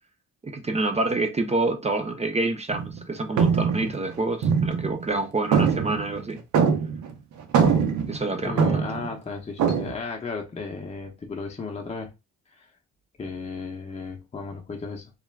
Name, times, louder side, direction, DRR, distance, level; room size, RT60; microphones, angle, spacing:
voice 1, 0.4-6.4 8.1-8.9, right 2 dB, 20° right, 0.5 m, -27 dB
sound 1, 2.7-3.0 3.4-5.2 5.5-7.1 7.4-9.1 9.6-9.9, right 6 dB, 70° right, 0.7 m, -23 dB
voice 2, 8.4-12.1 12.5-12.7 13.2-15.1, left 4 dB, 20° left, 0.7 m, -34 dB
2.4 x 2.2 x 3.2 m
cardioid pair, 90°, 30 cm